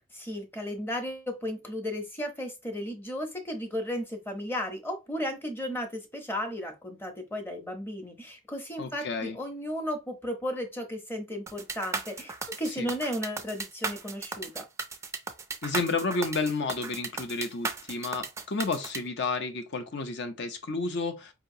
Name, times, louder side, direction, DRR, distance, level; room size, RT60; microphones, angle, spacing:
voice 1, 0.1-14.6, equal, 10° left, 0.7 m, -34 dB
voice 2, 8.8-9.4 12.7-12.9 15.6-21.3, left 3 dB, 60° left, 0.7 m, -31 dB
sound 1, 11.5-19.0, right 4 dB, 15° right, 0.3 m, -35 dB
4.8 x 2.8 x 2.7 m
head